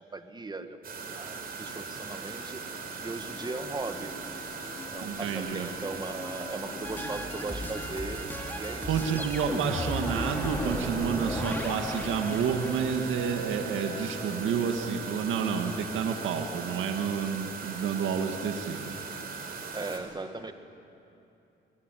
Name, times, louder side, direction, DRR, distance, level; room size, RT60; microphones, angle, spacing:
voice 1, 0.1-0.8 1.1-2.6 3.0-4.1 4.9-8.9 9.5-9.7 19.7-20.5, right 3 dB, 20° right, 8 dB, 1.7 m, -38 dB
sound 1, 0.8-20.0, right 5 dB, 50° right, 4.7 m, -39 dB
Singing, 3.0-16.2, left 2 dB, 25° left, 2.8 m, -46 dB
voice 2, 5.0-5.7 8.9-18.9, right 7 dB, 80° right, 4 dB, 1.9 m, -30 dB
sound 2, 6.8-13.2, equal, 10° left, 3.2 m, -35 dB
24.0 x 20.5 x 9.3 m, 2.7 s
cardioid pair, 90°, 20 cm